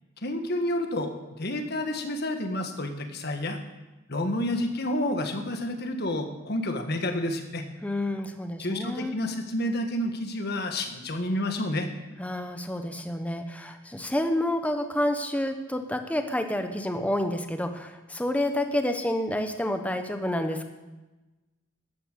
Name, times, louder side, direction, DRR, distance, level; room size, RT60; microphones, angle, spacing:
voice 1, 0.2-1.1 1.4-3.6 4.1-7.6 8.6-11.9, left 1 dB, 50° left, 5 dB, 1.6 m, -29 dB
voice 2, 7.8-9.1 12.2-20.7, left 1 dB, 5° left, 6 dB, 0.9 m, -29 dB
13.5 x 9.9 x 6.7 m, 1.1 s
head